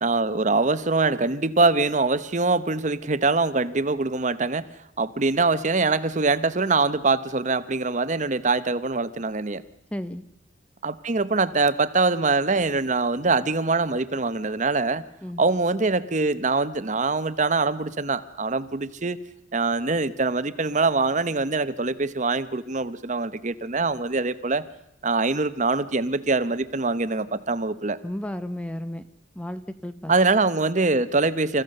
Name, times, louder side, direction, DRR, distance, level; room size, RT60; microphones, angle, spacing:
voice 1, 0.0-4.7 5.0-9.6 10.8-15.0 15.4-19.2 19.5-24.6 25.0-28.0 30.1-31.6, right 3 dB, 40° right, 14 dB, 0.9 m, -23 dB
voice 2, 9.9-10.2 15.2-15.4 28.0-29.0 29.4-30.1, left 1 dB, 5° left, 11 dB, 0.7 m, -33 dB
28.0 x 15.0 x 6.6 m, 0.84 s
head